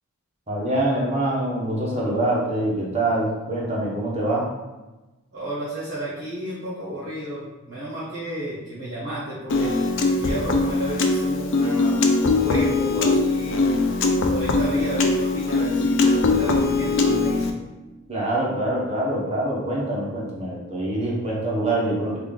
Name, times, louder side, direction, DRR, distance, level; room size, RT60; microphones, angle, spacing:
voice 1, 0.5-4.5 18.1-22.2, right 1 dB, 30° right, -5 dB, 1.0 m, -25 dB
voice 2, 5.3-9.8 10.2-13.8 14.3-17.6, right 1 dB, 55° right, -9 dB, 1.0 m, -32 dB
Piano, 9.5-17.5, left 3 dB, 60° left, 0.4 m, -21 dB
3.4 x 2.4 x 3.6 m, 1.1 s
head